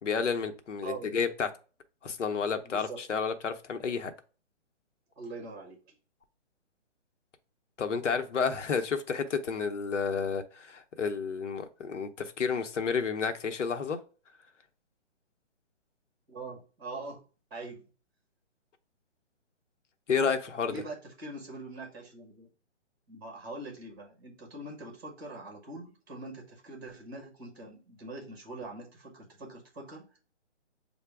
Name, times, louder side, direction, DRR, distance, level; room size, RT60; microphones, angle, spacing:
voice 1, 0.0-1.5 2.0-4.1 7.8-14.0 20.1-20.8, left 5 dB, 85° left, 0.9 m, -31 dB
voice 2, 0.8-1.2 2.6-3.0 5.1-5.8 16.3-17.2 17.5-17.8 20.7-22.5 23.1-30.2, right 2 dB, 20° right, 1.2 m, -43 dB
6.6 x 2.2 x 3.4 m
hypercardioid pair, 180°, 35 cm